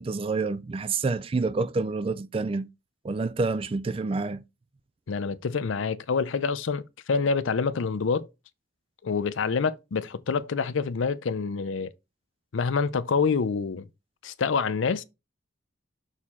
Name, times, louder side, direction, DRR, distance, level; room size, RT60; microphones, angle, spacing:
voice 1, 0.0-2.7 3.0-4.4, right 3 dB, 30° right, 0.3 m, -28 dB
voice 2, 5.1-8.3 9.0-11.9 12.5-13.8 14.2-15.0, left 5 dB, 75° left, 0.5 m, -27 dB
6.4 x 3.6 x 4.3 m
head